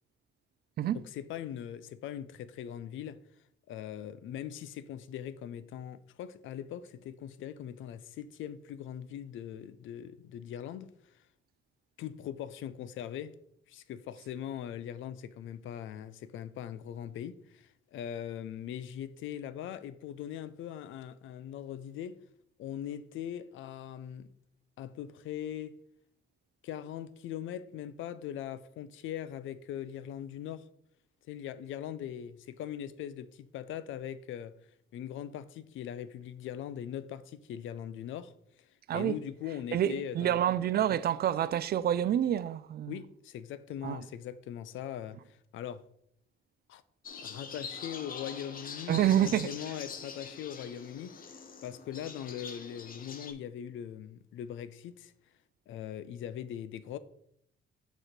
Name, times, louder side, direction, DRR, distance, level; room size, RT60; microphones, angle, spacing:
voice 1, 0.9-3.2 3.7-11.2 12.0-13.3 13.7-22.2 22.6-24.3 24.8-25.7 26.6-30.6 31.3-34.5 34.9-38.7 38.9-40.4 42.9-45.2 45.5-45.9 46.7-46.8 47.2-51.1 51.6-55.1 55.7-57.0, left 10 dB, 80° left, 0.5 m, -41 dB
voice 2, 39.7-43.0 43.8-44.0 48.9-49.5, right 11 dB, 55° right, 0.4 m, -28 dB
sound 1, 47.0-53.3, left 5 dB, 45° left, 0.9 m, -44 dB
6.5 x 3.1 x 5.8 m
cardioid pair, 90°, 20 cm